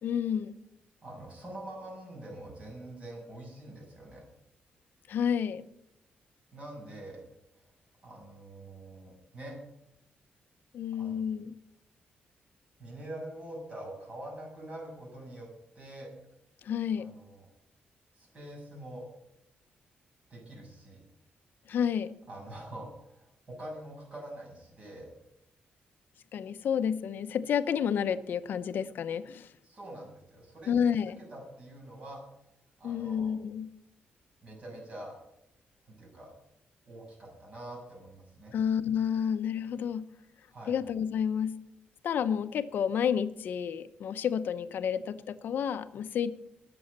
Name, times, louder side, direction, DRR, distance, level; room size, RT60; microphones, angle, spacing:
voice 1, 0.0-0.5 5.1-5.6 10.7-11.5 16.6-17.1 21.7-22.1 26.3-29.5 30.7-31.2 32.8-33.7 38.5-40.0 40.7-41.6 42.0-46.3, left 8 dB, 65° left, 12 dB, 0.7 m, -30 dB
voice 2, 1.0-4.2 6.5-7.2 8.0-9.5 11.0-11.2 12.8-15.5 15.7-16.1 16.9-17.4 18.1-19.0 20.3-21.0 22.3-25.1 29.6-30.8 31.3-32.2 32.8-33.3 34.4-35.1 36.0-36.3 36.8-38.6 40.5-40.8, right 1 dB, 35° right, -1 dB, 6.7 m, -45 dB
20.5 x 7.0 x 6.7 m, 0.83 s
wide cardioid pair, 165°, 4 cm